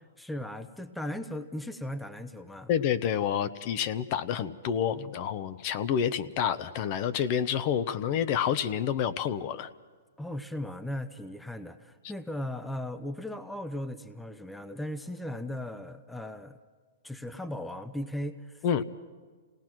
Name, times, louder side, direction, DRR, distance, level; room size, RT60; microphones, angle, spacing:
voice 1, 0.2-2.7 10.2-16.6 17.0-18.8, left 1 dB, 5° left, 10 dB, 0.7 m, -37 dB
voice 2, 2.7-9.7 18.6-18.8, left 8 dB, 40° left, 13 dB, 0.8 m, -28 dB
27.5 x 18.5 x 6.1 m, 1.5 s
hypercardioid pair, 150°, 0 cm